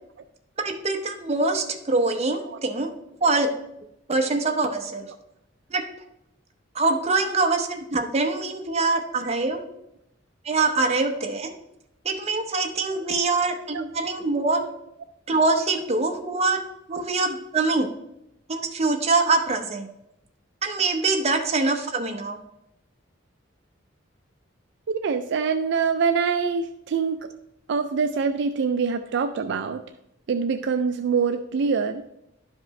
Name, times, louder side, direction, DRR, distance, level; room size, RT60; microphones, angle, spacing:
voice 1, 0.6-2.9 3.2-3.5 4.1-5.1 5.7-5.8 6.7-9.6 10.4-11.5 12.0-14.6 15.3-16.6 16.9-17.9 18.5-19.9 20.6-22.4, right 3 dB, 35° right, 4 dB, 0.9 m, -24 dB
voice 2, 24.9-27.3 27.7-29.8 30.3-32.0, right 5 dB, 65° right, 7 dB, 0.4 m, -25 dB
11.5 x 5.1 x 3.1 m, 0.82 s
head